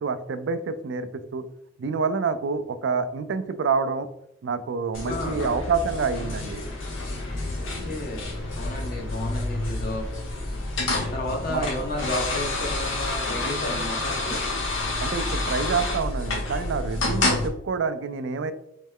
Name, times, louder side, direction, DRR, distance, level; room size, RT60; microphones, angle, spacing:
voice 1, 0.0-1.4 1.8-4.1 4.4-6.6 11.5-11.7 15.0-18.5, right 5 dB, 65° right, 12 dB, 0.3 m, -27 dB
sound 1, 4.9-17.5, left 2 dB, 85° left, 0.8 m, -29 dB
voice 2, 5.1-5.4 7.6-10.1 11.1-14.4, left 1 dB, 50° left, 1 dB, 0.9 m, -32 dB
3.1 x 3.1 x 3.5 m, 0.80 s
head